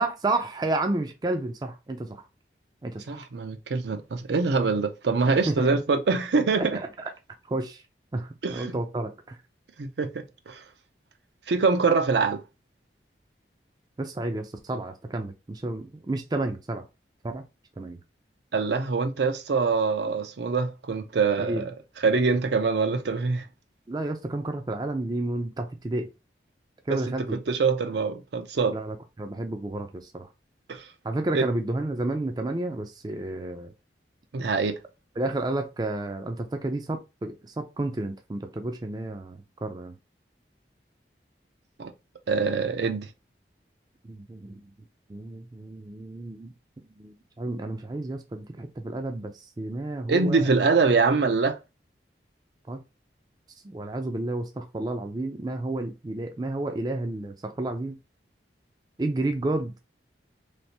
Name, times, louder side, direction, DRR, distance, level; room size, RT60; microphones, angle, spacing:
voice 1, 0.0-2.2 2.8-3.2 5.5-5.8 6.6-6.7 7.5-7.8 8.1-9.4 14.0-16.8 17.2-17.4 17.8-18.0 21.4-21.6 23.9-26.1 26.9-27.4 28.7-29.9 30.1-30.3 31.0-33.7 35.2-40.0 44.1-44.6 45.1-46.5 47.0-50.5 52.7-52.8 53.6-58.0 59.0-59.8, right 2 dB, 25° right, 0.3 m, -31 dB
voice 2, 3.1-6.8 8.4-8.8 9.8-10.6 11.5-12.4 18.5-21.7 22.0-23.5 26.9-28.8 30.7-30.8 31.3-31.5 34.3-34.8 41.8-41.9 42.3-43.1 50.1-51.6, right 4 dB, 75° right, 0.5 m, -24 dB
3.3 x 2.5 x 2.7 m
head